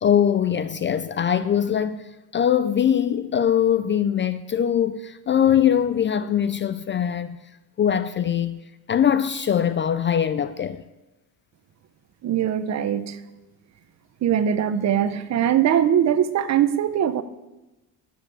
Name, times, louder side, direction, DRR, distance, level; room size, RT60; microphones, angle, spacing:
voice 1, 0.0-7.4 7.8-8.6 8.9-10.8, left 9 dB, 30° left, 0.4 m, -22 dB
voice 2, 12.2-13.2 14.2-17.2, right 9 dB, 45° right, 0.7 m, -21 dB
12.0 x 7.7 x 8.2 m
cardioid pair, 160°, 40 cm